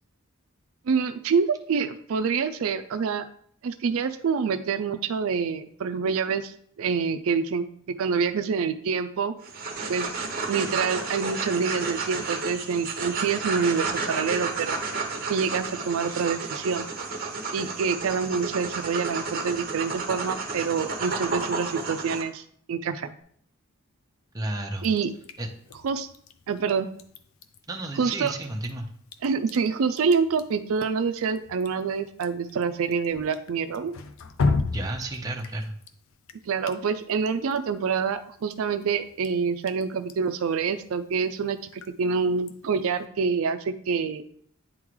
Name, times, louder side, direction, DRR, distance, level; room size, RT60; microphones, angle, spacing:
voice 1, 0.9-3.3 3.6-7.7 8.0-9.3 9.9-10.2 10.5-14.8 15.3-16.9 17.5-22.4 22.7-23.1 24.8-25.1 25.8-26.1 26.5-26.9 28.0-28.3 29.2-33.9 36.5-44.2, right 5 dB, 75° right, 11 dB, 0.4 m, -26 dB
sound 1, 9.4-22.2, right 4 dB, 45° right, 0.9 m, -32 dB
voice 2, 24.3-24.9 25.4-25.5 27.7-28.9 34.7-35.8, right 1 dB, 15° right, 1 dB, 0.7 m, -32 dB
Drip, 24.8-43.1, left 3 dB, 70° left, 0.5 m, -37 dB
9.3 x 3.7 x 3.1 m, 0.63 s
head